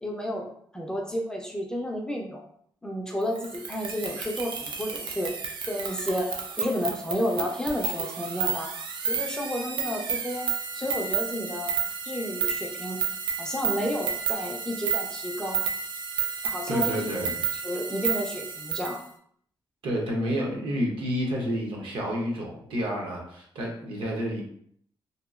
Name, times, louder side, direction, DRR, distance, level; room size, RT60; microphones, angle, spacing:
voice 1, 0.0-2.4 2.8-5.3 5.7-6.3 6.6-8.7 9.0-10.5 10.7-11.7 12.1-13.0 13.4-15.6 16.4-17.0 17.5-19.0, equal, 10° left, 0 dB, 0.3 m, -31 dB
sound 1, 3.4-19.0, right 6 dB, 65° right, 0.4 m, -31 dB
voice 2, 16.7-17.4 19.8-24.4, equal, 85° right, -1 dB, 0.8 m, -29 dB
2.7 x 2.3 x 2.4 m, 0.64 s
wide cardioid pair, 180°, 9 cm